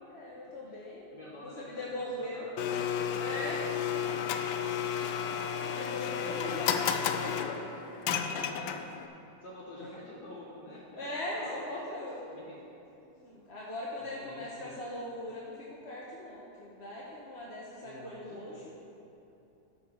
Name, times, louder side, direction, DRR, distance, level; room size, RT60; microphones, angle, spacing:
voice 1, 0.1-1.1 1.4-2.5 3.2-3.6 3.9-4.0 5.2-8.0 9.8-9.9 11.0-12.2 13.2-15.5 15.8-18.6, left 1 dB, 40° left, -6 dB, 1.3 m, -40 dB
voice 2, 1.1-3.7 4.2-4.5 6.2-6.5 8.2-8.9 9.4-11.1 11.3-12.6 14.1-14.8 17.8-18.7, left 1 dB, 60° left, -5 dB, 1.7 m, -48 dB
Domestic sounds home sounds, 2.6-9.1, left 8 dB, 80° left, 1.3 m, -32 dB
11.5 x 6.0 x 6.5 m, 2.9 s
omnidirectional pair, 2.0 m